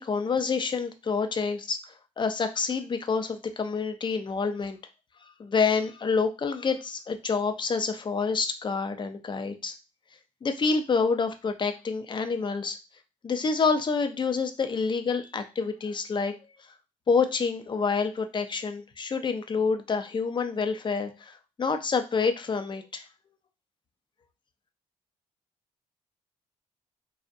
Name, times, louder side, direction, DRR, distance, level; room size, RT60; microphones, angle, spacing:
voice 1, 0.0-1.8 2.2-4.8 5.2-9.7 10.4-12.8 13.2-16.3 17.1-23.1, left 5 dB, 35° left, 7 dB, 0.5 m, -27 dB
2.4 x 2.0 x 2.6 m, 0.29 s
supercardioid pair, 70°, 14 cm